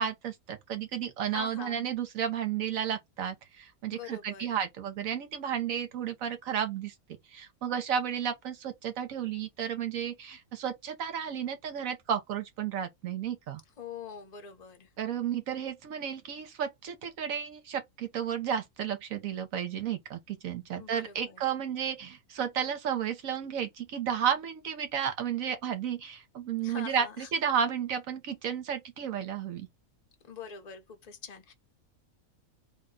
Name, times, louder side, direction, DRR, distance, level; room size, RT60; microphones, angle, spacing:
voice 1, 0.0-6.9 7.3-13.6 15.0-29.7, right 8 dB, 70° right, 1.1 m, -32 dB
voice 2, 1.3-1.9 3.9-4.6 13.8-14.9 20.8-21.4 26.6-27.3 30.3-31.5, left 7 dB, 35° left, 0.8 m, -44 dB
3.6 x 2.2 x 3.6 m
omnidirectional pair, 1.6 m